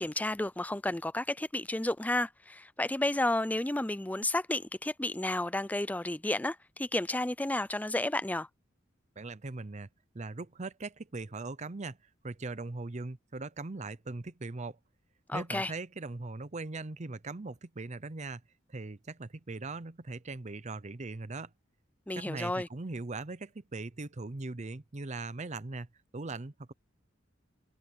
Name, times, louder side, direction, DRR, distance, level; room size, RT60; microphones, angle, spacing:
voice 1, 0.0-8.5 15.3-15.7 22.1-22.7, left 1 dB, 10° left, 0.5 m, -32 dB
voice 2, 9.2-9.9 10.1-12.0 12.2-14.8 15.3-18.4 18.7-21.5 22.1-25.9 26.1-26.7, right 3 dB, 40° right, 0.7 m, -40 dB
head